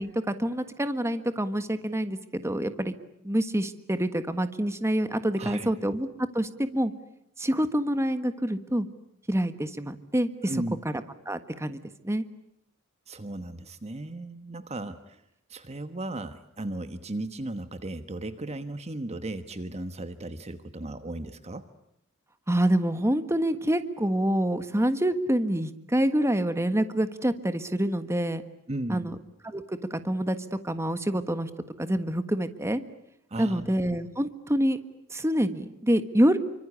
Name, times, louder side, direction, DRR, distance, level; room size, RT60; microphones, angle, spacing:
voice 1, 0.0-2.9 3.2-6.1 6.3-6.9 7.4-8.9 9.3-10.5 10.8-11.8 12.0-12.2 22.5-28.4 28.9-29.1 29.4-30.4 30.6-31.5 31.8-32.8 33.4-34.8 35.1-36.4, right 1 dB, 15° right, 10 dB, 1.5 m, -26 dB
voice 2, 5.4-5.7 10.4-10.8 13.1-15.2 15.5-21.7 28.7-29.2 33.3-33.8, right 1 dB, 30° right, 10 dB, 1.2 m, -36 dB
28.5 x 25.0 x 8.3 m, 0.78 s
head